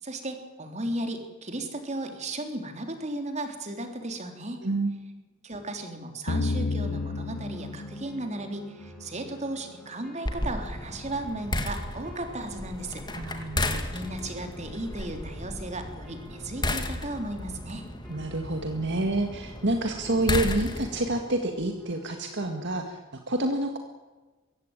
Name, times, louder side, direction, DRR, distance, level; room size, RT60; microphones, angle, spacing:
voice 1, 0.0-4.6 5.4-13.1 13.9-17.9, right 1 dB, 35° right, 5 dB, 3.4 m, -35 dB
sound 1, 6.3-9.2, left 3 dB, 65° left, 1.0 m, -31 dB
sound 2, 6.8-22.8, left 1 dB, 5° left, 6.8 m, -50 dB
sound 3, 10.3-21.1, left 1 dB, 20° left, 2.1 m, -34 dB
voice 2, 13.1-13.8 18.1-23.0 23.3-23.8, right 2 dB, 55° right, 5 dB, 1.9 m, -28 dB
23.0 x 16.5 x 9.0 m, 1.2 s
head